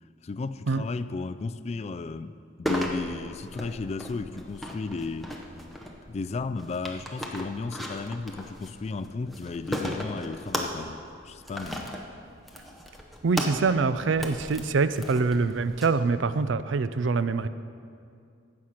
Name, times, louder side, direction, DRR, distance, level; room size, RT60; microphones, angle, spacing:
voice 1, 0.2-5.3 6.1-11.9, left 3 dB, 35° left, 13 dB, 0.3 m, -34 dB
sound 1, 2.7-15.9, equal, ahead, 0.8 m, -37 dB
voice 2, 13.2-17.5, right 4 dB, 65° right, 13 dB, 0.4 m, -25 dB
16.0 x 6.4 x 5.8 m, 2.4 s
head